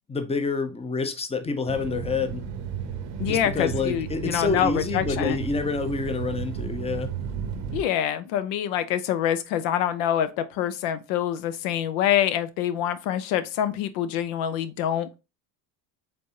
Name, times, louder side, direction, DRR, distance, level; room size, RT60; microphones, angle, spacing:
voice 1, 0.1-2.4 3.2-7.1, left 4 dB, 15° left, 0.6 m, -28 dB
sound 1, 1.7-7.8, right 7 dB, 65° right, 0.8 m, -33 dB
voice 2, 3.2-5.4 7.7-15.2, left 10 dB, 75° left, 0.7 m, -26 dB
4.1 x 3.2 x 2.8 m
hypercardioid pair, 75°, 49 cm